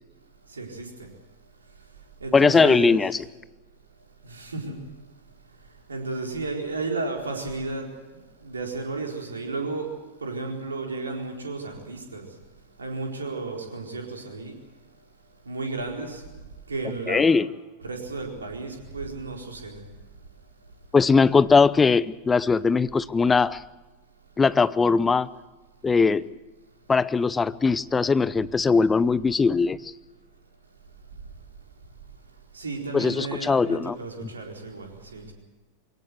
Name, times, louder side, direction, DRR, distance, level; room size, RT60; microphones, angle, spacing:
voice 1, 0.5-1.1 2.2-3.0 4.2-4.8 5.9-12.3 12.8-14.6 15.4-16.2 16.7-17.4 17.8-19.9 32.5-35.3, right 3 dB, 75° right, 2 dB, 4.3 m, -33 dB
voice 2, 2.3-3.2 17.1-17.5 20.9-23.6 24.4-25.3 25.8-26.2 26.9-29.8 32.9-34.0 34.2-34.3, left 4 dB, 15° left, 18 dB, 0.7 m, -20 dB
23.0 x 18.0 x 7.9 m, 1.2 s
figure-of-eight pair, 90°, 0 cm